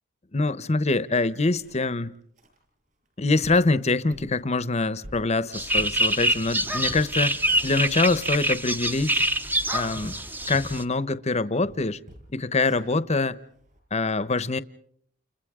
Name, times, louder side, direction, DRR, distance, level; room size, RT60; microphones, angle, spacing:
voice 1, 0.3-2.1 3.2-9.2 9.7-10.1 10.5-12.0 12.3-13.4 13.9-14.6, left 3 dB, 35° left, 0.9 m, -24 dB
sound 1, 1.2-1.9 2.4-2.6 3.1-3.2 3.4-3.7 4.1-4.4 4.8-6.5 6.8-8.3 8.8-10.9 11.3-11.4 11.6-13.8, equal, 40° right, 7.9 m, -45 dB
sound 2, 5.5-10.8, right 1 dB, 10° right, 0.9 m, -25 dB
30.0 x 30.0 x 3.7 m
head